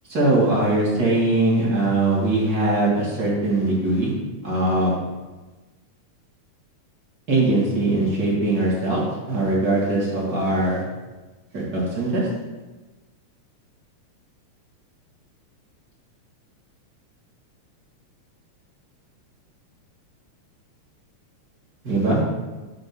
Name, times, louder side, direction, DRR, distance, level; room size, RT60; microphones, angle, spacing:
voice 1, 0.1-4.1 4.4-4.9 7.3-10.8 11.5-12.3 21.8-22.2, right 2 dB, 40° right, -5 dB, 1.7 m, -21 dB
8.2 x 2.9 x 6.1 m, 1.2 s
omnidirectional pair, 3.3 m